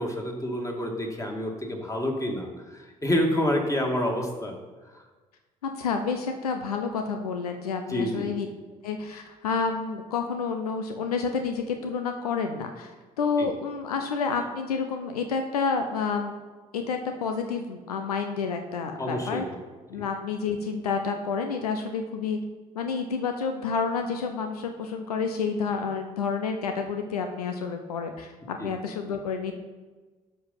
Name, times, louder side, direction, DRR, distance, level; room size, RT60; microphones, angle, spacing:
voice 1, 0.0-4.5 7.9-8.3 13.4-13.5 19.0-19.4 28.6-28.7, left 1 dB, 15° left, 1 dB, 2.4 m, -28 dB
voice 2, 5.6-8.5 8.8-12.9 13.2-16.3 16.7-19.4 19.9-22.4 22.8-29.5, left 5 dB, 80° left, 5 dB, 0.6 m, -29 dB
11.0 x 5.4 x 5.7 m, 1.3 s
figure-of-eight pair, 50°, 19 cm